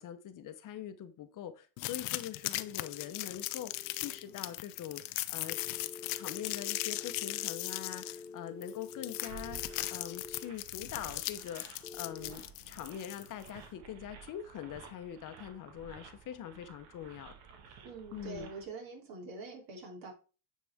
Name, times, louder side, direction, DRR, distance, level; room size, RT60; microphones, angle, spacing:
voice 1, 0.0-5.6 6.1-17.3 17.7-17.8 18.1-18.5, left 10 dB, 50° left, 0.9 m, -43 dB
sound 1, 1.8-13.5, left 19 dB, 80° left, 0.7 m, -38 dB
sound 2, 2.5-4.5 5.5-10.5 11.8-12.3, left 4 dB, 10° left, 0.5 m, -49 dB
sound 3, 9.2-18.6, right 7 dB, 80° right, 1.7 m, -53 dB
voice 2, 17.8-20.1, right 3 dB, 55° right, 3.2 m, -45 dB
9.9 x 4.2 x 3.5 m
supercardioid pair, 105°, 41 cm